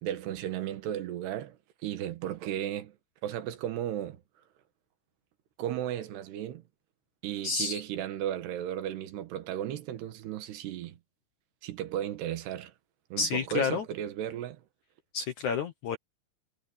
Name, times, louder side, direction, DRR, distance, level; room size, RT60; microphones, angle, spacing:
voice 1, 0.0-2.9 3.2-4.2 5.6-6.6 7.2-11.0 11.6-12.7 13.1-14.6, right 11 dB, 75° right, 3.4 m, -35 dB
voice 2, 7.4-7.8 13.2-13.8 15.1-16.0, left 5 dB, 65° left, 2.0 m, -30 dB
omnidirectional pair, 4.9 m